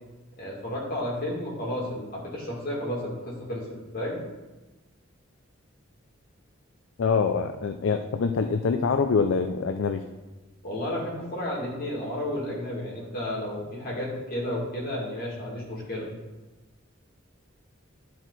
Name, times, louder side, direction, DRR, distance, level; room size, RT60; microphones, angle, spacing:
voice 1, 0.4-3.6 3.9-4.2 10.6-16.1, left 1 dB, 50° left, -4 dB, 2.4 m, -32 dB
voice 2, 7.0-10.0, left 5 dB, 65° left, 6 dB, 0.4 m, -25 dB
11.0 x 4.6 x 4.0 m, 1.1 s
head